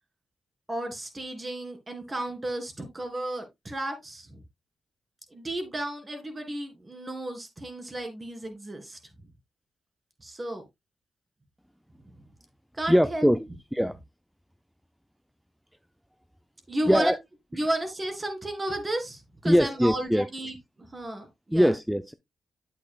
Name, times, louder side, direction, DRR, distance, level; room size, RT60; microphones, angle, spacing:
voice 1, 0.7-4.4 5.3-9.0 10.2-10.6 12.7-13.3 16.7-17.1 17.5-20.5 20.9-21.7, right 1 dB, 30° right, 3.0 m, -33 dB
voice 2, 12.9-14.0 16.9-17.2 17.5-17.6 19.5-20.3 21.5-22.1, equal, ahead, 0.4 m, -22 dB
8.6 x 8.1 x 2.3 m
cardioid pair, 55°, 0 cm